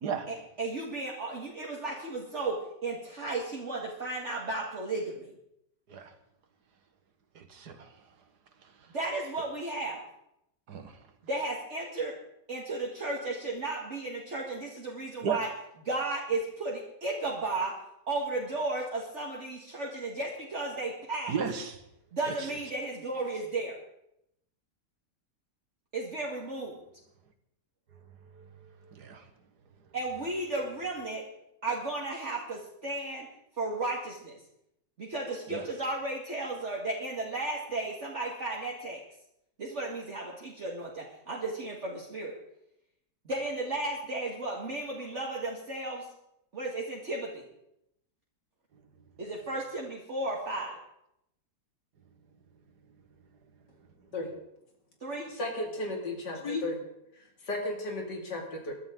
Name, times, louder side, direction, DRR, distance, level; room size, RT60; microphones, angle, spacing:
voice 1, 0.3-5.3 8.9-10.0 11.2-12.1 12.5-15.5 15.9-17.7 18.1-21.3 22.1-23.8 25.9-26.8 29.9-31.2 31.6-33.3 33.6-34.4 35.0-39.0 39.6-42.3 43.3-46.0 46.5-47.4 49.2-50.8 55.0-55.3, right 2 dB, 45° right, -3 dB, 2.1 m, -34 dB
voice 2, 7.4-7.9 10.7-10.9 15.2-15.5 21.3-21.8 22.3-22.5 28.3-29.2 35.5-35.7, right 6 dB, 70° right, 7 dB, 2.0 m, -35 dB
voice 3, 55.3-56.8 57.4-58.7, left 2 dB, 85° left, 1 dB, 3.2 m, -34 dB
21.5 x 12.5 x 3.8 m, 0.80 s
omnidirectional pair, 1.8 m